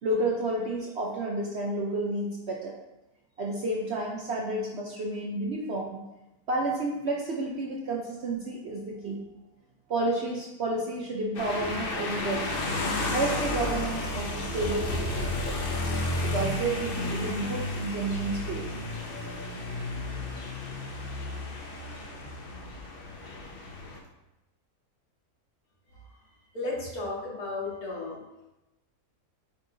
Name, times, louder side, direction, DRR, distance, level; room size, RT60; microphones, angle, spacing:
voice 1, 0.0-2.7 3.4-6.0 6.5-9.2 9.9-12.5 13.1-15.6 16.2-18.7, right 2 dB, 55° right, -1 dB, 0.8 m, -31 dB
sound 1, 11.3-24.0, left 2 dB, 45° left, 0.8 m, -32 dB
voice 2, 26.5-28.2, left 2 dB, 70° left, -6 dB, 2.3 m, -34 dB
8.2 x 4.5 x 2.7 m, 0.99 s
omnidirectional pair, 1.7 m